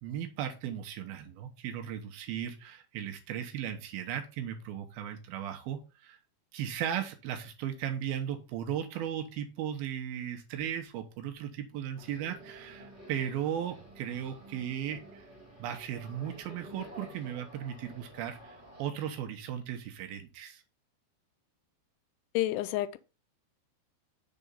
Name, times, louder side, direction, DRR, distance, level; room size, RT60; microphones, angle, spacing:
voice 1, 0.0-6.2 6.5-15.3 15.6-20.6, right 9 dB, 75° right, 2.4 m, -36 dB
sound 1, 11.9-18.9, right 1 dB, 20° right, 1.4 m, -51 dB
voice 2, 22.3-23.0, left 15 dB, 85° left, 2.9 m, -29 dB
6.9 x 3.7 x 5.3 m
omnidirectional pair, 5.4 m